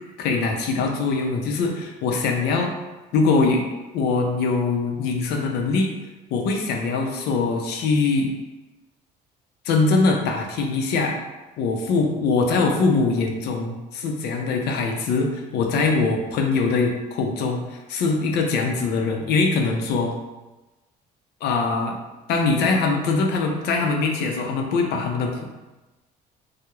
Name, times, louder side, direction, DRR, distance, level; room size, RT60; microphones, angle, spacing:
voice 1, 0.2-2.7 3.1-3.6 3.9-5.9 6.3-8.3 9.6-11.2 11.6-20.1 21.4-22.0 22.3-25.4, left 4 dB, 75° left, 2 dB, 0.5 m, -22 dB
2.3 x 2.0 x 2.9 m, 1.1 s
cardioid pair, 110°, 17 cm